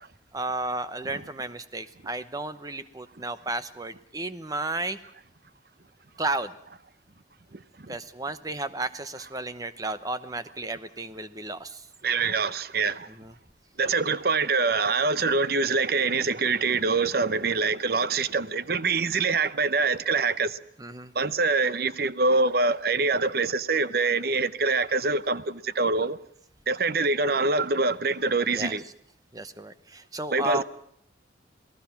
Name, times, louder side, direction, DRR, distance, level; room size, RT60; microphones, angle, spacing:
voice 1, 0.3-5.0 6.2-6.5 7.9-11.9 13.2-13.3 20.8-21.1 28.5-28.7 29.3-30.6, right 2 dB, 20° right, 0.9 m, -33 dB
voice 2, 7.5-8.0 12.0-13.1 13.8-20.6 21.1-26.2 26.7-28.8 30.3-30.6, right 4 dB, 55° right, 0.8 m, -25 dB
28.0 x 18.0 x 5.9 m
head